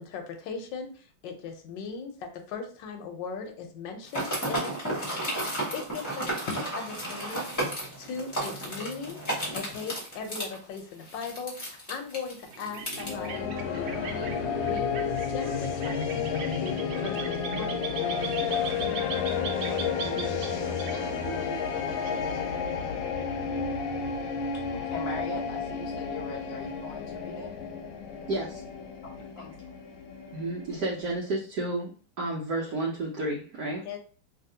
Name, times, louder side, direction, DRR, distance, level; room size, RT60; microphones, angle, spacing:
voice 1, 0.0-5.2 5.7-9.2 9.5-18.6 33.8-34.0, left 5 dB, 75° left, 5 dB, 1.3 m, -39 dB
sound 1, 4.1-13.1, right 1 dB, 10° left, 1.0 m, -33 dB
sound 2, 12.4-22.8, right 5 dB, 85° right, 1.3 m, -39 dB
sound 3, 13.0-31.2, left 6 dB, 90° left, 1.4 m, -32 dB
voice 2, 23.8-24.4 24.7-27.5 29.0-29.7, left 2 dB, 45° left, -3 dB, 0.5 m, -41 dB
voice 3, 28.3-28.6 30.3-31.9 32.2-33.8, right 2 dB, 65° right, -3 dB, 1.2 m, -31 dB
3.0 x 2.8 x 2.7 m, 0.41 s
omnidirectional pair, 2.1 m